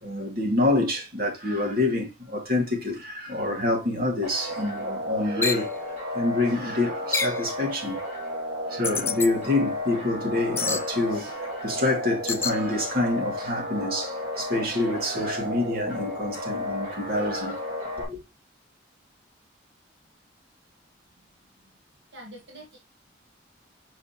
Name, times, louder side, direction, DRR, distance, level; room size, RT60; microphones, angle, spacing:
voice 1, 0.0-5.7 6.1-8.0 8.7-17.6 18.0-18.2, left 2 dB, 55° right, 2.4 m, -27 dB
sound 1, 4.2-18.0, left 1 dB, 40° right, 2.5 m, -33 dB
sound 2, 5.4-5.7 7.1-7.4 8.8-9.3 10.6-10.9 12.3-12.6, left 4 dB, 15° left, 0.4 m, -27 dB
voice 2, 22.1-22.8, right 1 dB, 75° right, 1.6 m, -45 dB
6.3 x 5.1 x 3.0 m
head